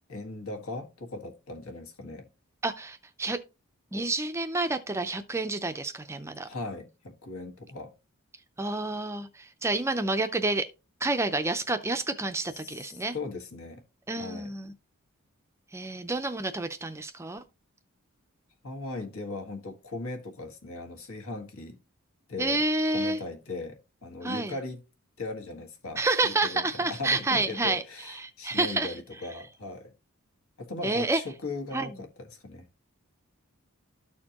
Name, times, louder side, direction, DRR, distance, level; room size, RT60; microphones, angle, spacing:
voice 1, 0.1-2.3 6.4-7.9 12.5-13.8 14.2-14.5 18.6-21.8 22.3-22.6 22.9-24.8 25.2-29.9 30.6-32.6, left 3 dB, 75° left, 1.6 m, -38 dB
voice 2, 2.6-3.4 3.9-6.5 8.6-10.7 11.0-13.1 14.1-14.7 15.7-17.4 22.4-23.2 24.2-24.5 26.0-28.9 30.8-31.2 31.7-31.9, right 2 dB, 10° right, 0.4 m, -29 dB
13.0 x 4.3 x 2.9 m
head